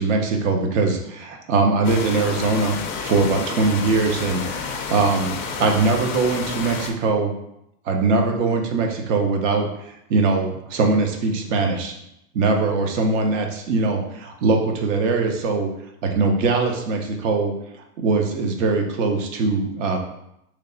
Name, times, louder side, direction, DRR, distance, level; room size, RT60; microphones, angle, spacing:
voice 1, 0.0-7.3 7.8-11.9 12.3-15.7 16.0-17.5 18.0-20.0, right 3 dB, 50° right, 3 dB, 0.8 m, -21 dB
sound 1, 1.8-6.9, left 5 dB, 35° left, 0.4 m, -30 dB
3.3 x 3.3 x 3.9 m, 0.81 s
supercardioid pair, 145°, 46 cm